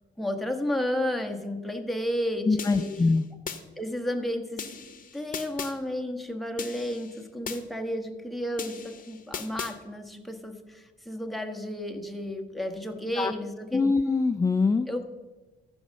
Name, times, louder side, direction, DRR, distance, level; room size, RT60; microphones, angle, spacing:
voice 1, 0.2-2.9 3.8-4.7 5.1-13.8 14.9-15.0, left 1 dB, ahead, 3 dB, 1.3 m, -32 dB
voice 2, 2.4-3.2 13.2-13.3 13.7-14.9, left 4 dB, 15° left, 9 dB, 0.4 m, -23 dB
sound 1, 2.6-3.6 4.6-5.7 6.6-7.6 8.6-9.7, left 7 dB, 45° left, 1.0 m, -38 dB
13.5 x 5.3 x 6.4 m, 1.2 s
cardioid pair, 90°, 20 cm